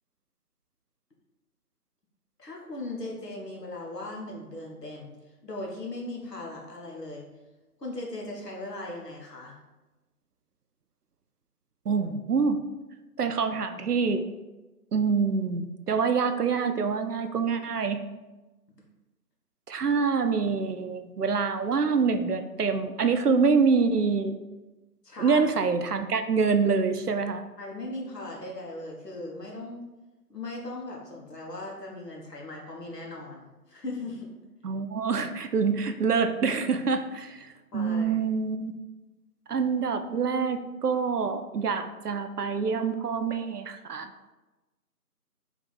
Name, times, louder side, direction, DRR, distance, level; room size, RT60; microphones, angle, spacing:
voice 1, 2.4-7.2 7.8-9.6 25.0-25.4 27.6-29.8 30.3-34.3 37.7-38.2, left 2 dB, 80° left, -2 dB, 1.3 m, -38 dB
voice 2, 11.9-12.6 13.2-14.2 14.9-18.0 19.7-24.3 25.2-27.4 34.6-38.7 39.5-44.1, right 5 dB, 75° right, 8 dB, 0.5 m, -26 dB
3.5 x 2.9 x 4.1 m, 1.1 s
figure-of-eight pair, 165°, 48 cm